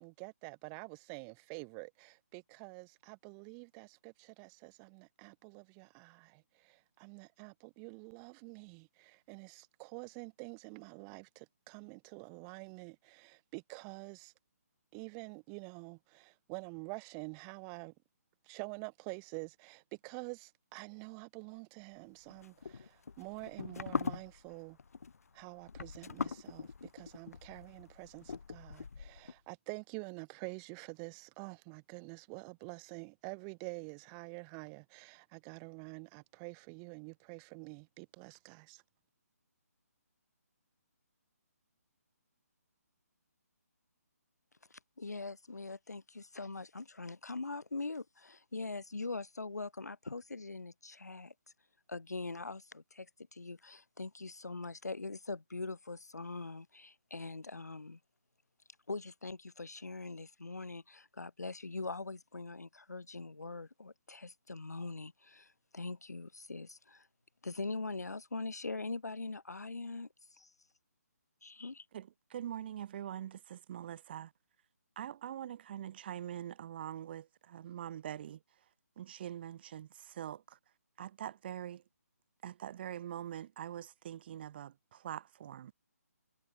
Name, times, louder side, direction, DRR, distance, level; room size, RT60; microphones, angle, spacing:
voice 1, 0.0-14.3 14.9-17.9 18.4-24.8 25.3-38.8, right 40 dB or more, 20° right, 2.1 m, -48 dB
sound 1, 22.3-29.3, left 5 dB, 65° left, 1.1 m, -41 dB
voice 2, 44.7-51.3 51.9-58.0 58.9-67.1 67.4-70.1 71.4-71.7, left 3 dB, 80° left, 2.7 m, -42 dB
voice 3, 72.3-74.3 75.0-78.4 79.0-80.6 81.0-81.8 82.4-85.7, right 10 dB, 40° right, 4.2 m, -43 dB
figure-of-eight pair, 150°, 9 cm